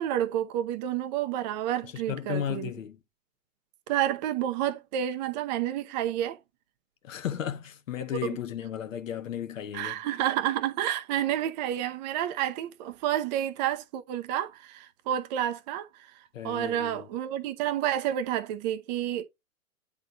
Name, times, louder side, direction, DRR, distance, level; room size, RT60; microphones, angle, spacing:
voice 1, 0.0-2.7 3.9-6.4 8.2-8.4 9.7-16.1 16.4-19.2, right 11 dB, 30° right, 0.8 m, -30 dB
voice 2, 1.9-3.0 7.0-10.0 16.3-17.1, left 10 dB, 60° left, 1.4 m, -34 dB
9.2 x 3.9 x 3.8 m
hypercardioid pair, 125°, 43 cm